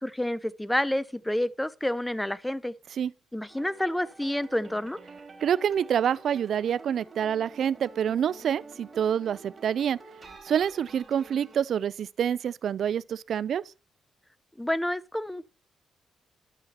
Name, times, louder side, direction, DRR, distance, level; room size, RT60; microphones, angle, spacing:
voice 1, 0.0-2.7 3.3-5.0 14.6-15.5, left 1 dB, 5° left, 0.7 m, -29 dB
sound 1, 3.5-11.6, right 4 dB, 35° right, 3.8 m, -48 dB
voice 2, 5.4-10.0 10.4-13.6, right 8 dB, 65° right, 0.4 m, -27 dB
12.5 x 5.7 x 4.3 m
cardioid pair, 75°, 0 cm